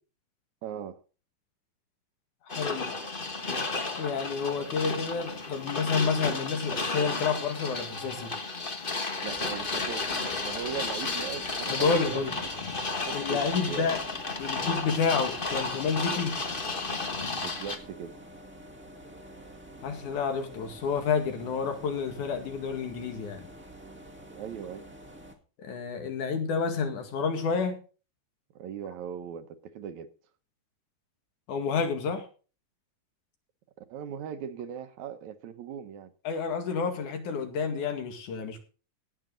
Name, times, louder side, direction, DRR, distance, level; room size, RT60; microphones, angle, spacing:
voice 1, 0.6-1.0 9.2-12.5 13.1-14.0 17.4-18.2 24.3-24.9 28.6-30.1 33.8-36.1, right 8 dB, 75° right, 2.3 m, -39 dB
voice 2, 2.5-2.9 4.0-8.3 11.7-12.3 13.1-14.0 14.4-16.4 19.8-23.5 25.6-27.8 31.5-32.3 36.2-38.6, left 5 dB, 80° left, 3.4 m, -29 dB
sound 1, 2.5-17.8, left 3 dB, 45° left, 0.6 m, -33 dB
sound 2, 9.3-25.3, right 1 dB, 5° right, 1.0 m, -48 dB
18.0 x 7.2 x 3.8 m
omnidirectional pair, 3.4 m